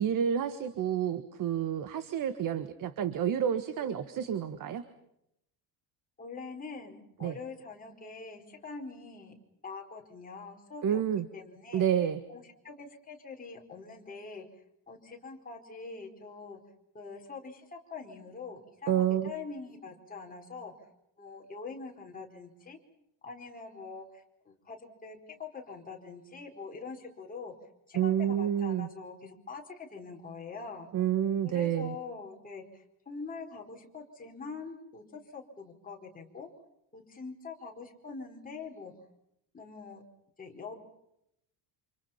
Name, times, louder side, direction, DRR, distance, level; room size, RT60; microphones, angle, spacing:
voice 1, 0.0-4.8 7.2-7.4 10.8-11.3 11.7-12.2 18.9-19.3 27.9-28.9 30.9-31.9, right 9 dB, 40° right, 11 dB, 1.5 m, -29 dB
voice 2, 6.2-9.3 9.6-11.0 11.3-11.9 12.3-14.5 14.9-16.6 16.9-20.7 21.2-22.8 23.2-27.5 27.9-30.9 31.4-36.5 36.9-38.9 39.5-40.0 40.4-40.7, left 4 dB, 15° left, 0 dB, 4.6 m, -44 dB
29.0 x 27.5 x 5.8 m, 0.79 s
cardioid pair, 170°, 49 cm